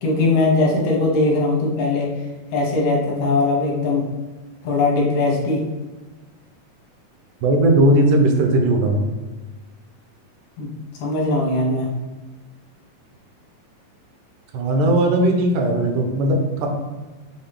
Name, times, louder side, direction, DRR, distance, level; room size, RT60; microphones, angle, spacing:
voice 1, 0.0-2.1 2.5-4.0 4.6-5.6 10.6-10.7 11.0-11.9, left 2 dB, 75° left, -2 dB, 2.1 m, -20 dB
voice 2, 7.4-9.0 14.5-16.7, right 1 dB, 80° right, 2 dB, 2.1 m, -17 dB
5.6 x 2.7 x 3.3 m, 1.2 s
omnidirectional pair, 3.7 m